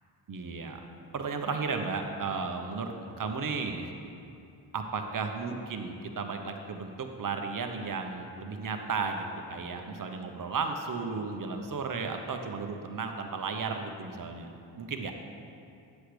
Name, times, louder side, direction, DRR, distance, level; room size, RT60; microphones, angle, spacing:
voice 1, 0.3-0.8 1.1-3.9 4.7-14.5 14.8-15.1, right 4 dB, 45° right, 5 dB, 1.0 m, -34 dB
10.0 x 7.9 x 3.3 m, 2.6 s
cardioid pair, 55°, 47 cm